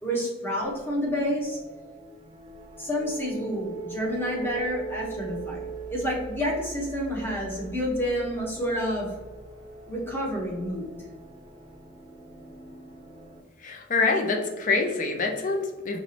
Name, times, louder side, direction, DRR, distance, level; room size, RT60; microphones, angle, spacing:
voice 1, 0.0-1.6 2.8-9.1 9.9-10.9, equal, 10° left, -3 dB, 0.9 m, -29 dB
sound 1, 0.7-13.4, right 4 dB, 25° right, 0.6 m, -42 dB
voice 2, 13.6-16.0, left 3 dB, 40° left, 3 dB, 0.5 m, -26 dB
4.6 x 3.0 x 2.8 m, 1.3 s
head